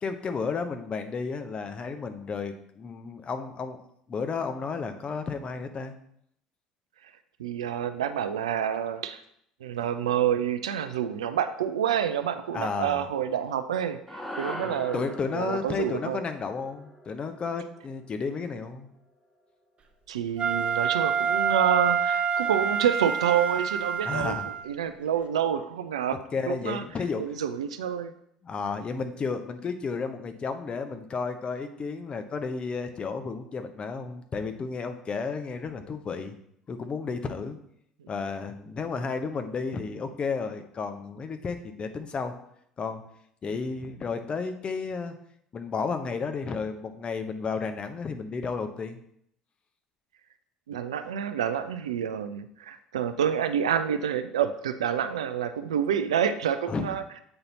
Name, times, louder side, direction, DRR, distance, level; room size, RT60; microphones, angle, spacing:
voice 1, 0.0-3.8 4.1-5.9 12.5-13.0 14.6-18.9 24.0-24.5 26.3-27.4 28.4-36.3 36.7-37.6 38.1-42.3 42.8-43.0 43.4-45.1 45.5-49.0 56.7-56.9, left 5 dB, 30° left, 7 dB, 0.8 m, -32 dB
voice 2, 7.4-9.2 9.6-15.0 15.3-16.2 20.1-24.4 24.6-26.2 26.5-26.8 27.2-28.1 50.7-57.0, right 9 dB, 70° right, 10 dB, 0.4 m, -28 dB
sound 1, 14.1-18.5, equal, 5° left, 1.6 m, -41 dB
Wind instrument woodwind instrument, 20.4-24.7, right 7 dB, 35° right, 0.8 m, -27 dB
7.8 x 4.0 x 4.0 m, 0.71 s
figure-of-eight pair, 60°, 3 cm